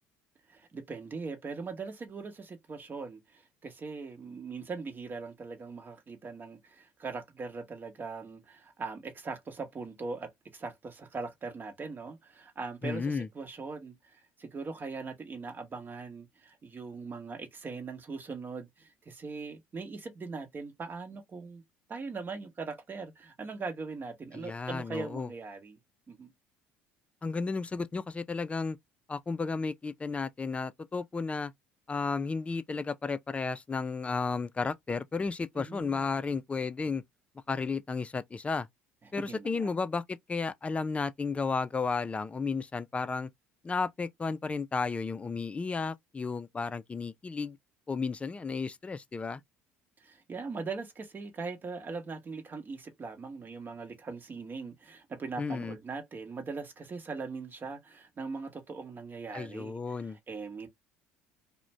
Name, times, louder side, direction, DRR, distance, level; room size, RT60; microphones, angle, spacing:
voice 1, 0.5-21.6 21.9-25.8 26.1-26.3 35.5-36.0 39.0-39.7 50.0-60.7, right 4 dB, 35° right, 1.0 m, -40 dB
voice 2, 12.8-13.3 24.3-25.3 27.2-28.8 29.1-31.5 31.9-37.0 37.5-38.7 39.1-43.3 43.6-47.6 47.9-49.4 55.4-55.8 59.3-60.2, left 4 dB, 20° left, 0.4 m, -33 dB
2.5 x 2.1 x 3.1 m
hypercardioid pair, 70°, 6 cm